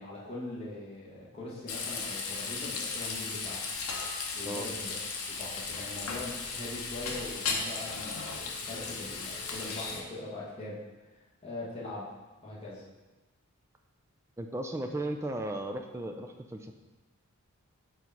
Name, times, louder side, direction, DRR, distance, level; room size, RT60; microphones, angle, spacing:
voice 1, 0.0-3.7 4.3-5.0 5.3-10.8 11.1-12.1 12.4-12.8, left 2 dB, 25° left, -7 dB, 1.3 m, -42 dB
Frying (food), 1.7-10.0, left 4 dB, 75° left, 0.8 m, -36 dB
voice 2, 14.4-16.7, right 1 dB, 10° right, 4 dB, 0.3 m, -35 dB
4.7 x 3.9 x 5.6 m, 1.2 s
head